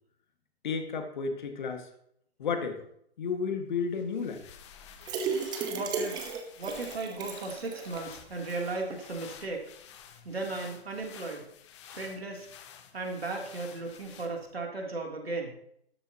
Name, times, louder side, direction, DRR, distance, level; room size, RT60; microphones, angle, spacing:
voice 1, 0.6-1.9 2.4-2.9 3.2-4.4, left 5 dB, 45° left, 5 dB, 2.0 m, -32 dB
sound 1, 4.0-14.6, left 8 dB, 25° left, 1.0 m, -51 dB
sound 2, 5.0-8.1 8.5-8.6 8.9-9.0, right 5 dB, 15° right, 1.1 m, -35 dB
voice 2, 5.7-6.3 6.6-9.6 10.2-11.5 11.9-12.5 12.9-15.6, right 3 dB, 70° right, 1 dB, 3.3 m, -36 dB
13.0 x 11.5 x 3.0 m, 0.69 s
figure-of-eight pair, 130°, 32 cm